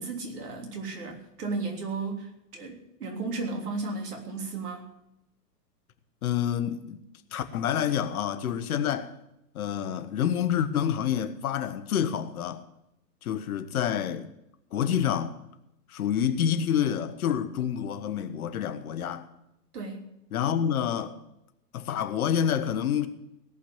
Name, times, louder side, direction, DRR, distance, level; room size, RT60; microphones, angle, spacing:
voice 1, 0.0-4.9 19.7-20.1, right 3 dB, 65° right, 3.5 m, -34 dB
voice 2, 6.2-7.0 7.3-9.1 9.5-12.7 13.2-14.3 14.7-15.4 15.9-19.3 20.3-21.2 21.7-23.1, left 9 dB, 60° left, 1.4 m, -28 dB
17.5 x 5.9 x 9.7 m
figure-of-eight pair, 105°, 49 cm